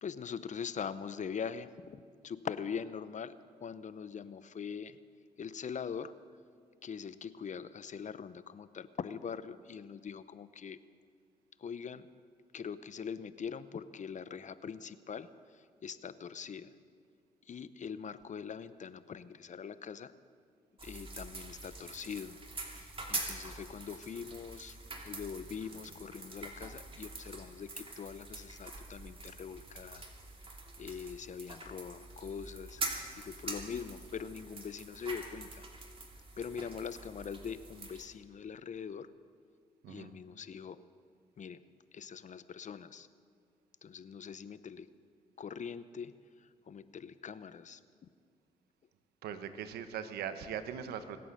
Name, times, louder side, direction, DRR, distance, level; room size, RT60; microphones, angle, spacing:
voice 1, 0.0-5.0 5.4-6.1 6.8-10.8 11.6-12.1 12.5-16.7 17.5-20.1 20.8-22.4 22.7-24.8 25.0-30.1 30.8-32.8 33.2-35.7 36.4-39.1 39.9-40.8 41.4-41.6 41.9-43.1 43.8-44.9 45.4-47.8, left 6 dB, 50° left, 15 dB, 0.7 m, -42 dB
sound 1, 20.8-38.1, right 2 dB, 35° right, 2.8 m, -45 dB
voice 2, 39.8-40.1 49.2-51.2, right 8 dB, 85° right, 10 dB, 1.0 m, -40 dB
24.0 x 8.7 x 6.6 m, 2.1 s
supercardioid pair, 55°, 16 cm